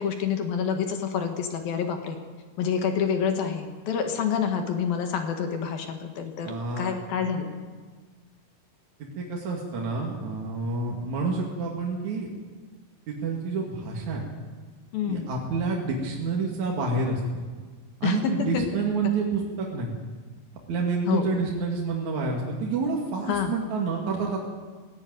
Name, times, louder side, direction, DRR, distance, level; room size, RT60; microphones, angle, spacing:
voice 1, 0.0-2.2 2.6-7.5 14.9-15.3 18.0-18.9 21.1-21.3 23.3-23.5, left 7 dB, 60° left, 5 dB, 2.8 m, -28 dB
voice 2, 6.4-7.0 9.0-12.3 13.1-14.3 15.1-17.4 18.0-19.9 20.7-24.4, right 4 dB, 45° right, -1 dB, 2.7 m, -28 dB
17.0 x 17.0 x 9.4 m, 1.5 s
omnidirectional pair, 5.8 m